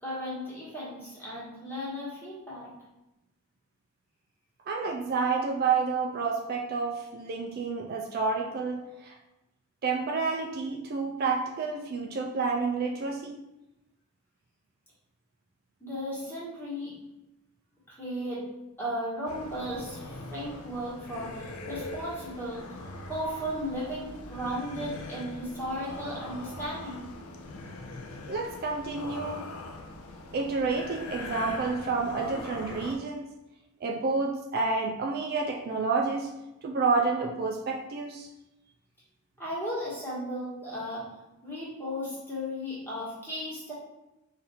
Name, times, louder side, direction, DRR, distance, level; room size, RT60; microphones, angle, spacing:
voice 1, 0.0-2.7 15.8-16.9 17.9-18.4 18.8-27.1 39.4-41.0 41.4-43.7, equal, 10° left, -8 dB, 1.4 m, -35 dB
voice 2, 4.7-9.2 9.8-13.4 28.3-29.4 30.3-33.3 33.8-36.3 36.6-38.3, right 4 dB, 45° right, 1 dB, 0.3 m, -29 dB
sound 1, 19.3-33.0, left 2 dB, 80° left, 0.5 m, -42 dB
4.0 x 2.6 x 4.2 m, 0.97 s
head